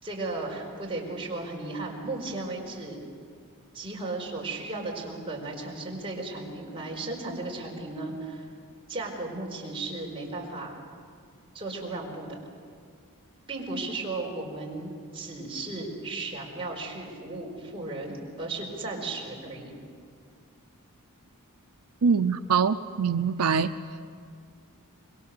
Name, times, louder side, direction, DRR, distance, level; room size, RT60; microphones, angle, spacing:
voice 1, 0.0-3.0 3.7-8.5 8.9-10.8 11.5-12.3 13.5-19.7, right 2 dB, 25° right, -2 dB, 4.7 m, -35 dB
voice 2, 22.0-23.7, right 6 dB, 85° right, 10 dB, 0.6 m, -24 dB
26.0 x 22.0 x 6.8 m, 2.1 s
head